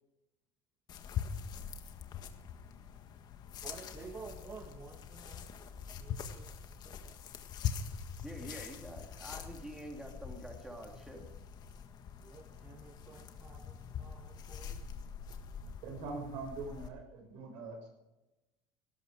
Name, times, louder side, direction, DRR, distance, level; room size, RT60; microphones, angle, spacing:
sound 1, 0.9-16.9, left 8 dB, 45° left, 1.6 m, -43 dB
voice 1, 3.6-5.4 5.9-7.2 12.2-14.8, right 4 dB, 30° right, 2 dB, 1.9 m, -51 dB
voice 2, 8.2-11.3, right 1 dB, 5° right, 1 dB, 2.9 m, -47 dB
voice 3, 15.8-17.9, right 3 dB, 75° right, 4 dB, 6.2 m, -43 dB
18.0 x 13.5 x 4.9 m, 1.0 s
supercardioid pair, 115°, 9 cm